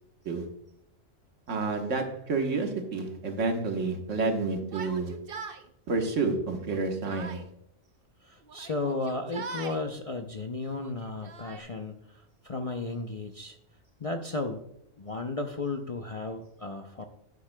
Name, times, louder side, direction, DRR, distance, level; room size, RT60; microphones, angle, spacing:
voice 1, 1.5-5.2 5.9-7.4, right 3 dB, 75° right, 4 dB, 1.5 m, -29 dB
Yell, 4.6-5.6 6.5-7.5 8.5-9.8 10.7-11.6, right 5 dB, 50° right, 0.9 m, -41 dB
voice 2, 8.2-13.6 14.0-14.6 15.0-17.0, left 3 dB, 40° left, 4 dB, 0.5 m, -34 dB
10.5 x 9.5 x 2.2 m, 0.78 s
omnidirectional pair, 1.3 m